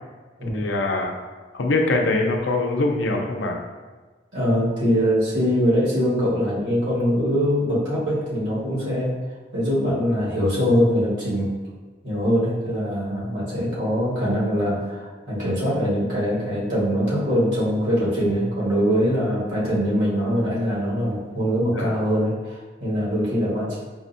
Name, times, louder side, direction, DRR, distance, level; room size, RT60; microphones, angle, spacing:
voice 1, 0.5-1.1 1.5-3.6 21.7-21.9, left 2 dB, 80° left, 2 dB, 0.5 m, -23 dB
voice 2, 4.3-9.1 9.5-11.5 12.0-23.9, equal, 85° right, -7 dB, 1.5 m, -22 dB
4.9 x 2.1 x 2.6 m, 1.3 s
head